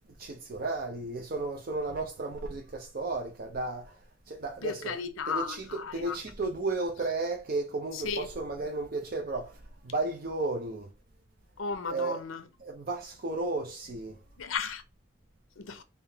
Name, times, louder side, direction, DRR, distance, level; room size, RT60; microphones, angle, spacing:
voice 1, 0.2-4.0 4.3-5.0 5.3-10.9 11.9-12.2 12.6-14.2, right 3 dB, 45° right, 0.5 m, -34 dB
voice 2, 4.6-6.2 7.9-8.3 11.6-12.4 14.4-14.8 15.6-15.8, left 5 dB, 80° left, 0.6 m, -34 dB
3.5 x 2.8 x 3.3 m
head